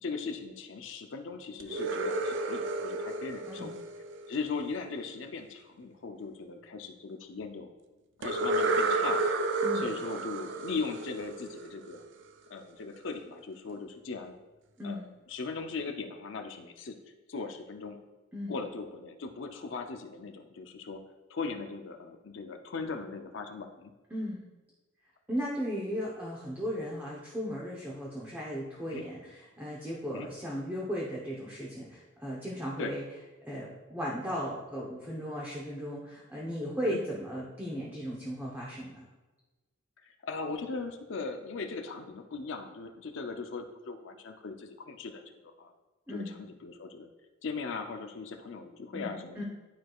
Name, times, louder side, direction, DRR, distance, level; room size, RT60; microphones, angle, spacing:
voice 1, 0.0-3.8 4.3-7.7 8.2-9.3 9.7-12.0 12.5-14.3 14.8-15.0 15.3-17.0 17.3-18.0 18.5-21.0 21.3-23.9 28.9-29.1 30.1-30.3 32.8-32.9 36.8-37.0 40.0-45.7 46.1-47.1 47.4-49.4, left 4 dB, 65° left, 5 dB, 0.5 m, -39 dB
sound 1, 1.6-4.6 8.2-11.9, right 3 dB, 60° right, 0.4 m, -31 dB
voice 2, 24.1-24.5 25.3-33.0 33.4-39.1 46.1-46.3 48.9-49.4, equal, 10° right, -5 dB, 0.8 m, -36 dB
11.0 x 4.6 x 2.4 m, 1.2 s
head